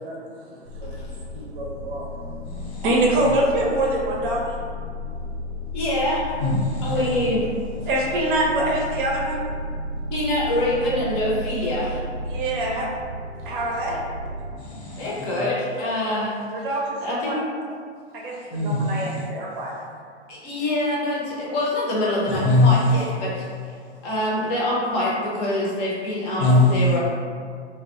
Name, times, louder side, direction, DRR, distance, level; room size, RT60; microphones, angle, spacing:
voice 1, 0.0-2.1 2.8-4.6 7.0-7.1 7.9-9.4 12.3-12.9 13.5-14.0 16.5-17.0 17.2-17.4 18.1-18.4 18.6-19.7, right 1 dB, 45° right, -3 dB, 0.6 m, -25 dB
sound 1, 0.7-14.5, left 1 dB, 90° right, 0.5 m, -33 dB
voice 2, 2.4-3.3 6.4-7.3 7.7-7.9 14.6-15.4 18.5-19.3 19.7-19.9 22.3-23.1 23.7-24.1 26.4-27.0, left 2 dB, 65° left, -6 dB, 1.0 m, -23 dB
voice 3, 5.7-6.3 6.8-7.5 10.1-12.0 15.0-16.3 17.0-17.4 20.3-23.5 24.0-26.4 26.7-27.0, left 1 dB, 35° left, -5 dB, 0.7 m, -25 dB
2.2 x 2.2 x 2.9 m, 2.1 s
figure-of-eight pair, 110°, 35 cm